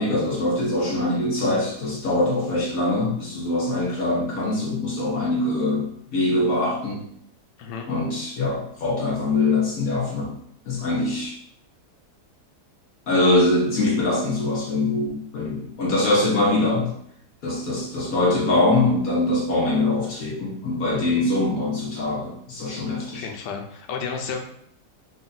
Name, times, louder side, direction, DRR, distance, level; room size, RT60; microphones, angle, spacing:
voice 1, 0.0-7.0 7.9-10.3 10.7-11.3 13.1-16.9 17.4-23.2, left 2 dB, 60° left, -4 dB, 1.3 m, -23 dB
voice 2, 23.1-24.4, left 5 dB, 85° left, 2 dB, 1.3 m, -31 dB
5.2 x 2.3 x 3.9 m, 0.69 s
omnidirectional pair, 1.8 m